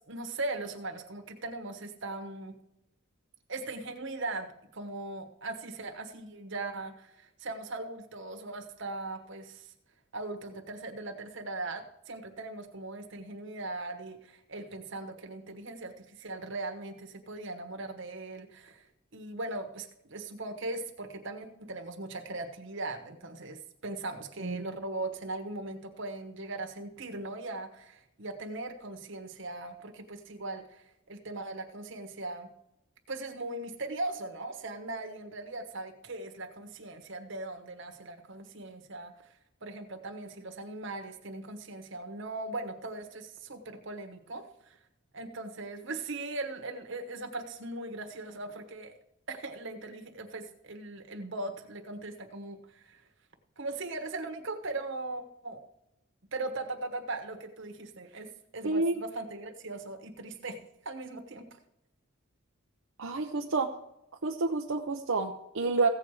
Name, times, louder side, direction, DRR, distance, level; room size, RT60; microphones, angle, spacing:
voice 1, 0.1-2.6 3.5-9.7 10.1-18.8 19.1-32.5 33.1-39.1 39.6-44.8 45.1-48.9 49.3-53.0 53.6-55.6 56.3-60.6 60.8-61.6, right 2 dB, 60° right, 5 dB, 1.3 m, -39 dB
voice 2, 58.6-58.9 63.0-63.7 64.2-65.9, right 3 dB, 80° right, 2 dB, 0.7 m, -29 dB
15.5 x 7.4 x 4.9 m, 0.85 s
head